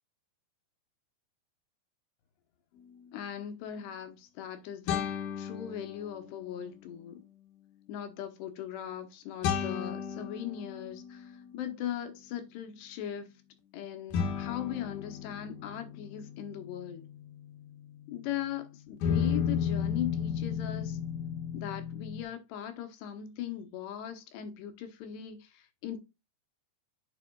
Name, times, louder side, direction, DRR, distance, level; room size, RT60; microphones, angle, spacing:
sound 1, 2.9-3.0 4.9-6.5 9.4-11.8 14.1-18.5 19.0-22.2, left 8 dB, 65° left, 2.3 m, -34 dB
voice 1, 3.1-7.2 7.9-11.2 11.5-13.3 13.7-17.1 18.1-21.0 21.5-25.4 25.8-26.0, left 10 dB, 85° left, 3.2 m, -39 dB
9.0 x 5.5 x 2.3 m
omnidirectional pair, 4.7 m